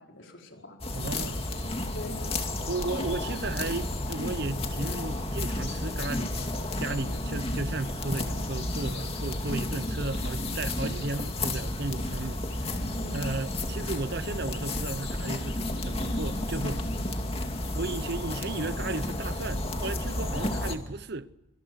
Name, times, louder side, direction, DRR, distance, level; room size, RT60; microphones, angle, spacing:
voice 1, 0.0-1.4 1.9-2.3 7.2-7.4 13.0-13.4, equal, 70° left, 4.9 m, -43 dB
sound 1, 0.8-20.8, left 1 dB, 30° left, 2.5 m, -32 dB
voice 2, 0.9-1.4 2.7-16.8 17.7-21.3, right 3 dB, 50° right, 0.9 m, -35 dB
26.0 x 26.0 x 6.4 m
head